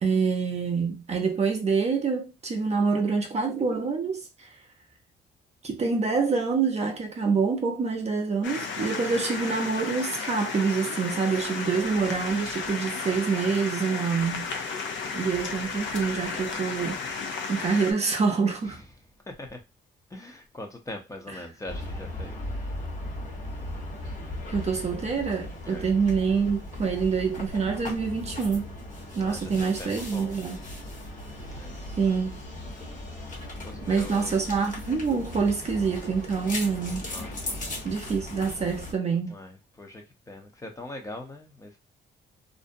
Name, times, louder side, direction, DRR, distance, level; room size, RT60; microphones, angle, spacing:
voice 1, 0.0-4.5 5.6-14.5 15.1-18.8 21.3-21.4 24.5-28.7 29.2-30.6 32.0-32.4 33.9-37.1 37.8-39.4, right 5 dB, 35° right, 0.5 m, -26 dB
sound 1, 8.4-17.9, left 5 dB, 70° left, 0.6 m, -33 dB
voice 2, 19.3-19.6 20.1-22.4 25.6-25.9 29.2-30.4 31.5-31.8 33.6-34.5 37.1-37.3 39.3-41.8, left 1 dB, 15° left, 0.6 m, -42 dB
sound 2, 21.7-38.9, left 1 dB, 40° left, 1.2 m, -37 dB
2.5 x 2.1 x 2.6 m
cardioid pair, 90°, 20 cm